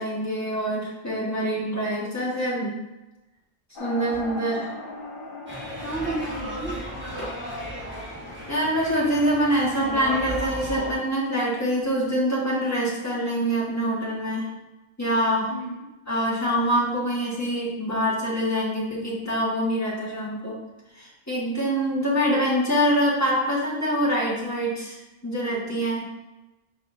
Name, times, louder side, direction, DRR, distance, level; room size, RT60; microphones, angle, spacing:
voice 1, 0.0-2.7 3.8-4.7 7.2-7.3 8.5-14.5 15.0-15.5 16.1-20.6 21.0-25.0 25.2-26.0, equal, 15° left, -6 dB, 1.8 m, -25 dB
sound 1, 3.8-8.9, left 2 dB, 60° left, 1.1 m, -40 dB
sound 2, 5.5-10.9, equal, 10° right, 1.5 m, -34 dB
voice 2, 5.8-6.9 15.5-15.9, right 2 dB, 65° right, -3 dB, 1.6 m, -32 dB
6.6 x 5.3 x 2.7 m, 1.0 s
omnidirectional pair, 1.0 m